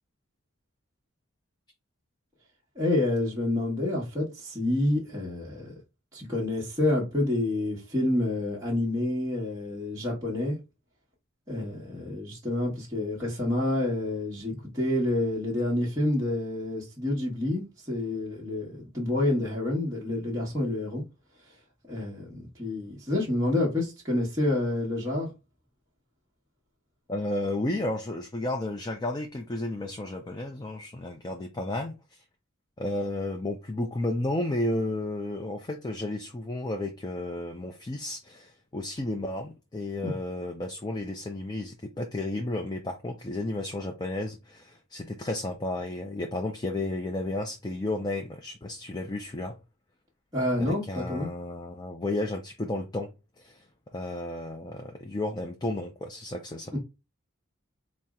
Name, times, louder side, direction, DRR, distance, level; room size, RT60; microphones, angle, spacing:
voice 1, 2.8-5.7 6.1-10.6 11.5-21.0 21.9-25.3 40.0-40.1 50.3-51.3 56.7-56.8, left 1 dB, 15° right, 1.0 m, -28 dB
voice 2, 27.1-32.2 32.8-49.6 50.6-53.1 53.4-53.6 53.9-56.8, left 2 dB, 20° left, 0.4 m, -32 dB
4.2 x 2.0 x 3.5 m
head